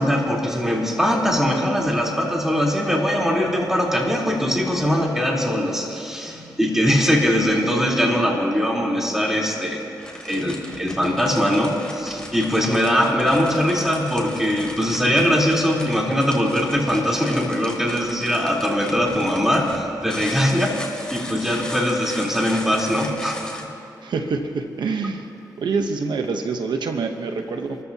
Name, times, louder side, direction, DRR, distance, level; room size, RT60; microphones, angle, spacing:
voice 1, 0.0-9.8 10.2-23.5, equal, 5° right, -3 dB, 3.7 m, -21 dB
sound 1, 9.6-23.6, left 1 dB, 10° left, 3.1 m, -38 dB
voice 2, 24.0-25.3 25.6-27.8, right 4 dB, 80° right, 5 dB, 0.9 m, -26 dB
27.5 x 14.0 x 2.9 m, 2.8 s
cardioid pair, 55°, 8 cm